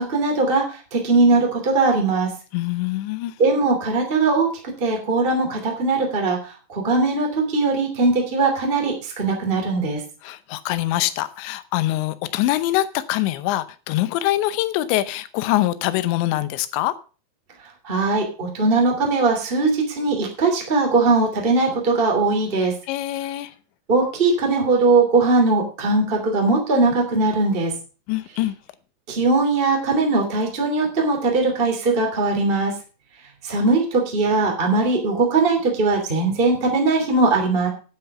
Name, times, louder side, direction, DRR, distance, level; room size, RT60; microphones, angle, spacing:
voice 1, 0.0-2.3 3.4-10.0 17.8-22.7 23.9-27.7 29.1-32.8 33.4-37.7, right 3 dB, 15° right, 2.1 m, -20 dB
voice 2, 2.5-3.3 10.2-16.9 22.9-23.5 28.1-28.6, left 15 dB, 85° left, 3.1 m, -24 dB
10.0 x 9.3 x 5.5 m
omnidirectional pair, 5.2 m